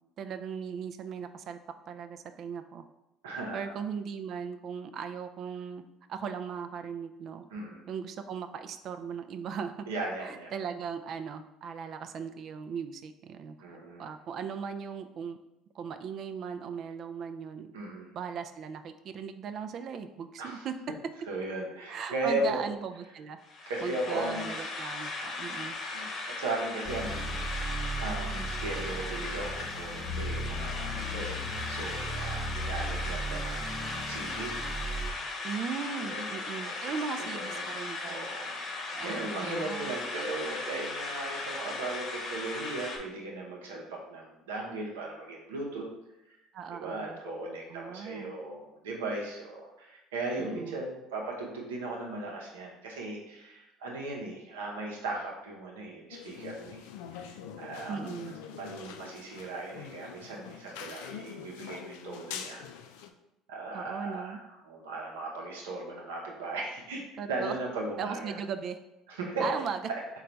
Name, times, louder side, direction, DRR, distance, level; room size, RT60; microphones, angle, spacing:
voice 1, 0.2-1.6 1.9-2.8 3.5-5.8 6.1-7.4 7.9-9.9 10.2-13.6 14.0-15.4 15.7-17.7 18.1-20.7 21.9-23.4 23.8-25.8 35.4-38.3 38.9-40.0 46.5-47.2 47.7-48.3 50.4-50.8 57.9-58.3 63.7-64.4 67.2-67.6 68.0-68.8 69.4-69.8, right 6 dB, 55° right, 8 dB, 0.4 m, -38 dB
voice 2, 3.2-3.7 7.5-7.8 9.9-10.5 13.6-14.1 17.7-18.1 20.4-20.7 21.3-22.6 23.7-24.5 25.9-27.3 28.0-34.5 36.0-37.7 38.0-45.8 46.3-46.4 46.7-58.0 58.5-62.6 63.5-64.4 64.6-67.0 67.3-68.4 69.1-69.4, right 2 dB, 90° right, -1 dB, 0.7 m, -37 dB
sound 1, 23.4-43.0, left 3 dB, 55° left, 0.8 m, -37 dB
sound 2, 26.8-35.1, right 1 dB, 20° left, 0.6 m, -36 dB
sound 3, 56.1-63.1, left 8 dB, 80° left, 0.3 m, -44 dB
3.8 x 2.3 x 4.4 m, 0.91 s
hypercardioid pair, 75°, 0 cm